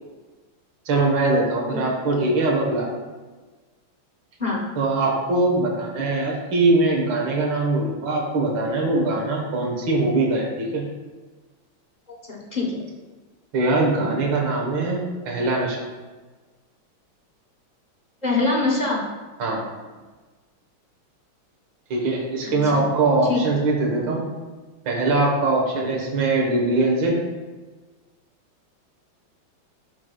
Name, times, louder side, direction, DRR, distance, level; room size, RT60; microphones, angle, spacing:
voice 1, 0.9-2.9 4.8-10.8 13.5-15.8 19.4-19.6 21.9-24.3 24.9-27.2, right 2 dB, 70° right, -2 dB, 2.0 m, -22 dB
voice 2, 12.3-12.8 18.2-19.0 22.5-22.9 23.3-23.4, left 3 dB, 30° left, -4 dB, 1.0 m, -24 dB
12.5 x 4.8 x 2.3 m, 1.3 s
omnidirectional pair, 2.2 m